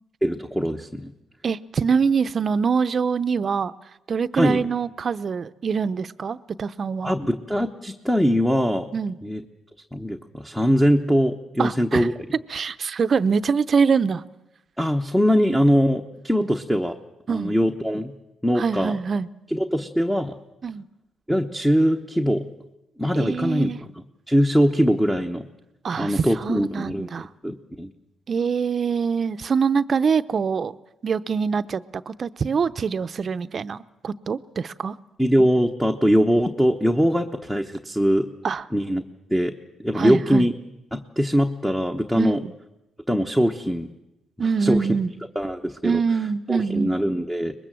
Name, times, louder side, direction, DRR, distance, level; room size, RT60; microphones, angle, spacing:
voice 1, 0.2-1.1 4.3-4.7 7.0-8.9 9.2-9.4 9.9-12.1 14.8-17.0 17.3-18.1 18.4-19.0 19.5-20.3 21.3-22.5 23.0-23.7 23.9-25.4 26.0-27.9 35.2-38.3 38.7-39.0 39.3-39.5 39.8-40.5 40.9-42.4 43.1-43.9 44.4-44.9 45.3-46.0 46.5-47.5, equal, 5° left, 1.1 m, -22 dB
voice 2, 1.4-3.7 4.1-7.1 8.9-9.2 11.6-12.1 12.5-14.2 16.4-16.5 17.3-17.5 18.6-19.3 20.6-20.9 23.1-23.8 25.8-27.3 28.3-30.8 31.0-34.9 38.4-38.6 40.0-40.5 42.2-42.5 44.4-45.1 45.8-46.9, right 5 dB, 45° right, 0.7 m, -24 dB
23.5 x 21.0 x 7.6 m
cardioid pair, 90°, 0 cm